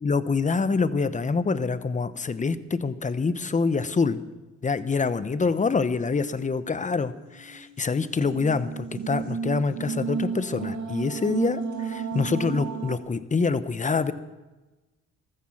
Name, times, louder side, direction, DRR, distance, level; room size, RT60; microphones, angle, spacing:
voice 1, 0.0-4.2 4.6-14.1, left 4 dB, 25° left, 13 dB, 0.9 m, -26 dB
sound 1, 6.9-13.0, right 6 dB, 70° right, 2.1 m, -33 dB
14.5 x 14.0 x 6.0 m, 1.1 s
cardioid pair, 90°, 30 cm